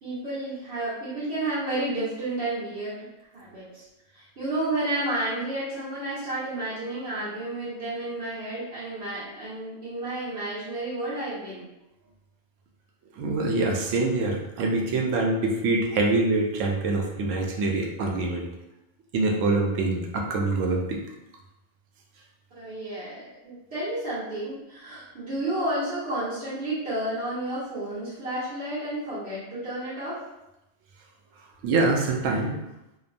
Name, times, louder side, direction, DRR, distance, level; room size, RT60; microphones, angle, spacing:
voice 1, 0.0-3.1 3.3-3.8 4.1-11.7 22.5-30.2, right 1 dB, 55° right, -14 dB, 1.3 m, -31 dB
voice 2, 13.2-18.5 19.1-21.0 31.6-32.6, right 2 dB, 80° right, 0 dB, 0.9 m, -25 dB
2.9 x 2.1 x 2.5 m, 0.91 s
omnidirectional pair, 1.3 m